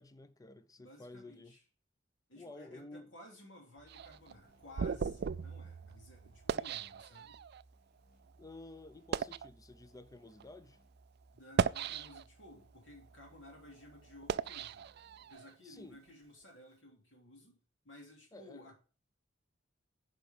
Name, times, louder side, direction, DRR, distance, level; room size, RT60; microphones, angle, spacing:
voice 1, 0.0-1.6 2.3-3.1 8.4-10.8 15.6-16.0 18.3-18.7, left 2 dB, 20° left, 0.6 m, -52 dB
voice 2, 0.8-1.6 2.3-7.4 11.3-14.9 15.3-18.7, left 1 dB, 70° left, 3.5 m, -56 dB
sound 1, 3.8-15.3, right 2 dB, 50° left, 2.8 m, -65 dB
sound 2, 3.9-7.6 8.3-8.4 9.0-9.5 10.3-10.4 11.4-12.5 13.0-15.5, right 6 dB, 55° right, 0.4 m, -37 dB
10.5 x 5.2 x 5.4 m
head